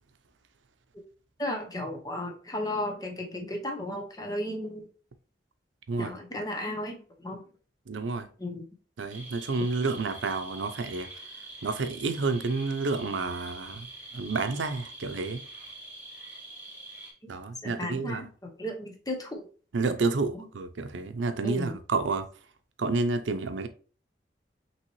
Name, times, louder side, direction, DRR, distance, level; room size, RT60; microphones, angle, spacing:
voice 1, 1.4-4.9 6.0-7.4 8.4-8.6 17.6-19.4 20.3-20.5 21.4-21.8, left 1 dB, 20° left, 0.8 m, -34 dB
voice 2, 7.9-8.3 9.0-11.1 11.6-13.9 14.1-15.4 17.3-18.3 19.7-22.3 22.8-23.7, right 3 dB, 90° right, 0.5 m, -30 dB
sound 1, 9.1-17.1, right 2 dB, 10° right, 1.3 m, -45 dB
5.6 x 3.0 x 3.0 m
head